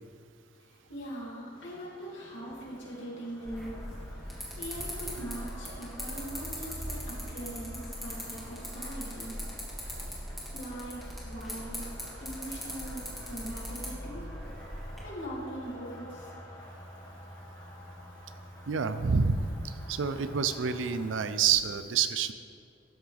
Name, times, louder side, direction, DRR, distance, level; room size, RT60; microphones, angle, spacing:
voice 1, 0.6-3.8 4.2-9.3 9.9-10.1 10.5-11.9 12.2-14.3 14.8-16.3, right 1 dB, 80° left, -5 dB, 2.3 m, -41 dB
sound 1, 1.5-21.1, equal, 20° left, 1.5 m, -50 dB
sound 2, 3.4-15.0, equal, ahead, 1.6 m, -40 dB
voice 2, 18.7-19.4 19.9-22.3, right 6 dB, 90° right, 11 dB, 0.5 m, -27 dB
12.5 x 6.0 x 3.4 m, 2.3 s
head